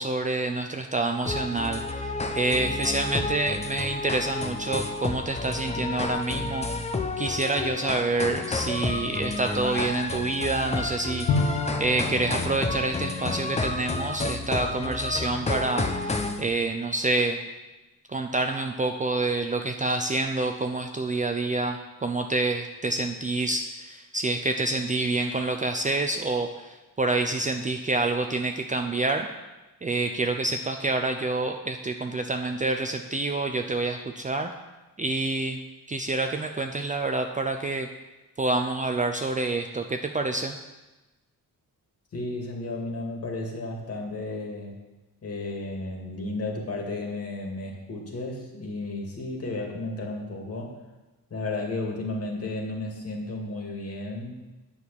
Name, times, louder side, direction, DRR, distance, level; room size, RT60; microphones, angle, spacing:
voice 1, 0.0-17.4 18.1-29.3 29.8-34.5 35.0-35.6 35.9-37.9 38.4-40.6, right 2 dB, 20° right, 5 dB, 0.5 m, -27 dB
sound 1, 1.3-16.4, left 3 dB, 20° left, 0.8 m, -30 dB
Bowed string instrument, 11.3-15.0, left 4 dB, 85° left, 1.5 m, -31 dB
voice 2, 42.1-44.7 45.2-50.7 51.3-54.4, left 2 dB, 40° left, 0 dB, 2.3 m, -33 dB
9.7 x 6.3 x 8.6 m, 1.1 s
wide cardioid pair, 165°, 36 cm